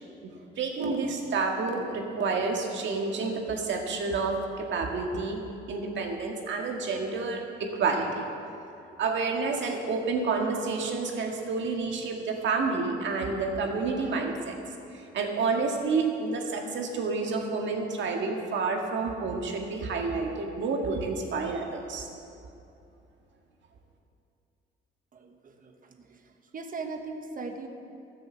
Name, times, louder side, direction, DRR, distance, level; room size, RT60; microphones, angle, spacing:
voice 1, 0.2-5.4 5.7-8.2 9.0-14.6 14.9-22.1, right 4 dB, 65° right, 2 dB, 1.8 m, -29 dB
voice 2, 25.1-26.2 26.5-27.7, right 4 dB, 45° right, 4 dB, 1.2 m, -39 dB
13.5 x 7.0 x 7.5 m, 2.8 s
cardioid pair, 90°, 20 cm